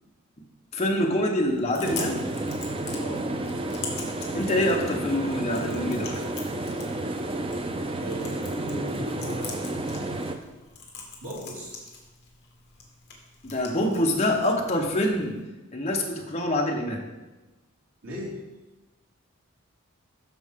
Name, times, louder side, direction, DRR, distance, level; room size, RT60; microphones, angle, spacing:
voice 1, 0.7-2.3 4.3-6.2 7.0-7.1 13.4-15.4 15.7-17.1, left 1 dB, 30° left, 0 dB, 1.0 m, -25 dB
Chewing mastication, 1.4-15.4, left 5 dB, 45° left, 1.6 m, -43 dB
sound 1, 1.8-10.4, right 2 dB, 25° right, 0.5 m, -31 dB
voice 2, 3.0-3.3 8.0-10.3 11.2-11.8 18.0-18.4, equal, 75° right, -5 dB, 2.7 m, -38 dB
13.0 x 4.6 x 3.6 m, 1.1 s
head